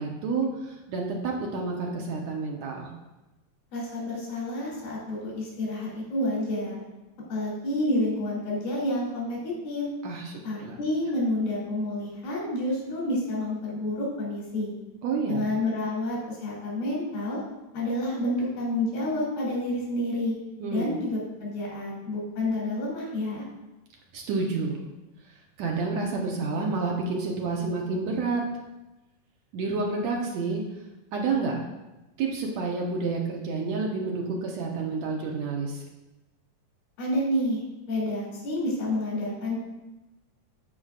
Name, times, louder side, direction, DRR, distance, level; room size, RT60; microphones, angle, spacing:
voice 1, 0.0-2.9 10.0-10.8 15.0-15.4 20.6-20.9 24.1-24.8 25.6-28.5 29.5-30.6 31.1-31.6 32.2-35.8, right 4 dB, 70° right, -1 dB, 1.8 m, -29 dB
voice 2, 3.7-6.8 7.3-9.8 10.4-14.7 15.3-17.4 17.7-20.3 20.7-23.4 37.0-37.6 37.9-39.6, left 1 dB, 85° left, -5 dB, 4.7 m, -29 dB
14.0 x 5.0 x 2.5 m, 1.0 s
omnidirectional pair, 4.1 m